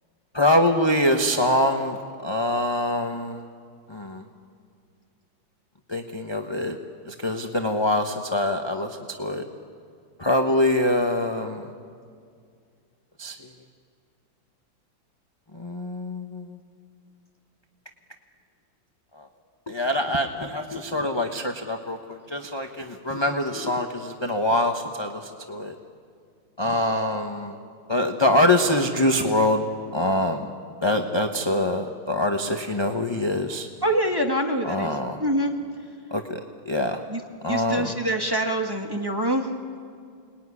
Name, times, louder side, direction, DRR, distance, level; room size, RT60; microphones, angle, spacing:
voice 1, 0.3-3.4 3.9-4.2 5.9-6.8 7.1-9.4 10.2-11.7 13.2-13.4 15.5-16.6 19.7-25.7 26.6-27.6 27.9-29.7 29.9-30.5 30.8-33.7 34.6-35.2 36.1-36.4 36.7-37.0 37.4-38.0, left 1 dB, 15° left, 3 dB, 1.0 m, -24 dB
voice 2, 33.8-35.5 37.1-37.2 37.5-39.5, right 1 dB, 10° right, 1 dB, 1.6 m, -25 dB
29.5 x 20.5 x 9.8 m, 2.2 s
omnidirectional pair, 2.1 m